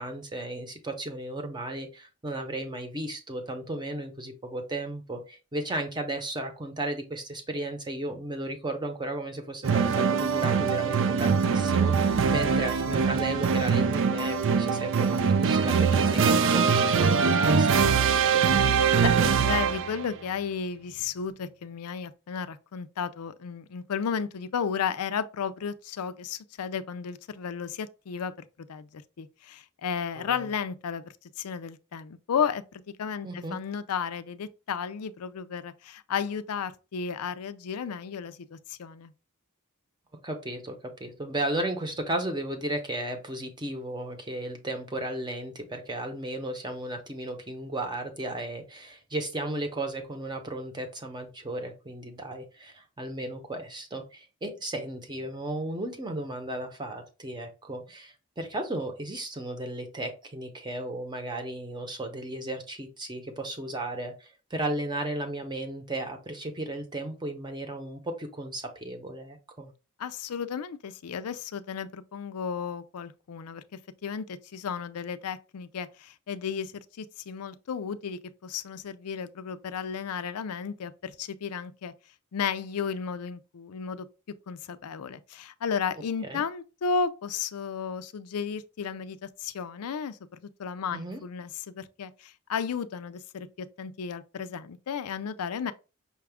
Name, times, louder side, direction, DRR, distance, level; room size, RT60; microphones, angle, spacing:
voice 1, 0.0-18.4 30.2-30.5 33.2-33.6 40.2-69.7 86.2-86.4 90.9-91.2, right 1 dB, 20° right, 0.8 m, -35 dB
sound 1, 9.6-20.1, right 6 dB, 60° right, 0.4 m, -23 dB
voice 2, 19.4-39.1 70.0-73.6 74.0-81.9 82.3-84.1 84.5-95.7, left 6 dB, 90° left, 0.4 m, -33 dB
5.7 x 2.3 x 3.4 m
head